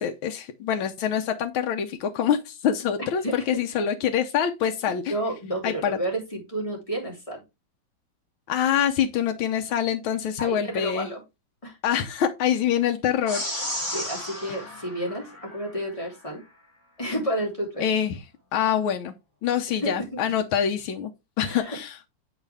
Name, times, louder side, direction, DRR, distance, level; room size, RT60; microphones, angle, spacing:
voice 1, 0.0-5.1 5.6-6.0 8.5-11.1 11.8-13.5 14.5-14.7 17.8-18.3 18.5-19.1 19.4-21.1 21.4-22.0, left 9 dB, 90° left, 1.6 m, -25 dB
voice 2, 5.1-7.4 10.4-11.2 11.6-11.8 13.9-16.4 17.0-17.8 19.8-20.2 21.4-21.8, right 1 dB, 15° left, 3.1 m, -31 dB
sound 1, 13.3-15.9, left 1 dB, 35° left, 3.1 m, -33 dB
8.0 x 4.9 x 3.4 m
omnidirectional pair, 2.1 m